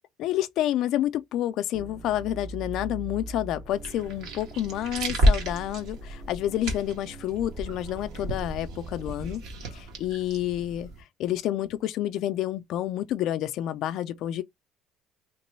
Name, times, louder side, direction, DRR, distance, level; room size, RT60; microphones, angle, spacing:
voice 1, 0.2-9.4 9.7-14.4, left 12 dB, 55° left, 0.3 m, -29 dB
sound 1, 1.7-9.1, right 2 dB, 30° right, 0.6 m, -43 dB
sound 2, 3.7-11.0, equal, 65° right, 1.4 m, -30 dB
3.0 x 2.9 x 3.1 m
cardioid pair, 155°, 0 cm